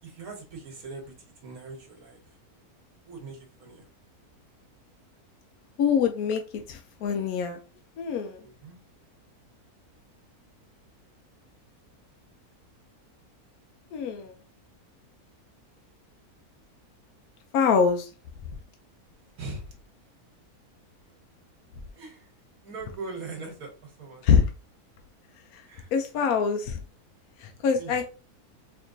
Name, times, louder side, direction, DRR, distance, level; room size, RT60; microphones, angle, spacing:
voice 1, 0.0-2.4 3.0-3.8 8.4-8.8 19.4-19.7 21.9-22.3 22.6-24.4 25.6-26.3 27.6-28.0, right 3 dB, 70° right, 1.4 m, -42 dB
voice 2, 5.8-7.6 8.0-8.4 13.9-14.3 17.5-18.1 24.2-24.5 25.5-25.6 25.9-26.8 27.4-28.0, left 6 dB, 75° left, 1.0 m, -24 dB
4.3 x 2.9 x 2.6 m
omnidirectional pair, 1.6 m